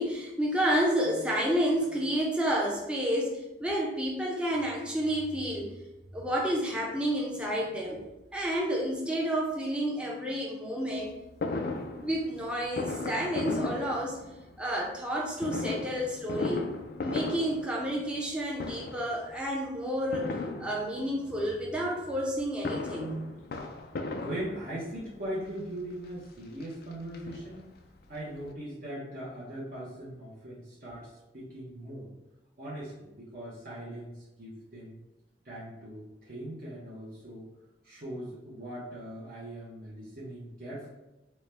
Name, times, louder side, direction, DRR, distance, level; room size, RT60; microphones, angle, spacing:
voice 1, 0.0-5.7 6.1-8.0 8.3-11.1 12.0-14.2 14.6-16.7 17.0-20.3 20.6-23.3, equal, 5° right, -3 dB, 0.6 m, -30 dB
Fireworks, 11.4-14.6 15.4-18.3 18.6-19.2 20.1-21.2 22.4-25.0 25.8-25.9 26.2-26.3 26.6-27.9 28.2-28.3 28.4-28.5, left 3 dB, 55° left, 0.4 m, -36 dB
voice 2, 24.1-27.7 28.1-32.1 32.6-35.0 35.4-37.5 37.8-40.9, right 1 dB, 50° right, -8 dB, 0.8 m, -40 dB
4.4 x 2.2 x 3.3 m, 1.0 s
head